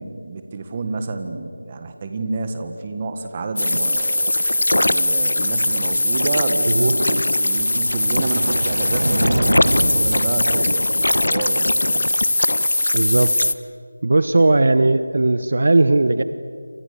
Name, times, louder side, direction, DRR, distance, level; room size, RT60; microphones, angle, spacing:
voice 1, 0.0-4.3 4.7-12.1, right 3 dB, 20° right, 7 dB, 1.6 m, -29 dB
sound 1, 3.6-13.5, left 1 dB, 85° left, 1.3 m, -20 dB
sound 2, 7.4-11.6, right 1 dB, 85° right, 5.3 m, -26 dB
voice 2, 12.9-13.3 14.0-16.2, right 2 dB, 50° right, 12 dB, 1.0 m, -17 dB
29.0 x 26.5 x 6.9 m, 2.3 s
figure-of-eight pair, 175°, 0 cm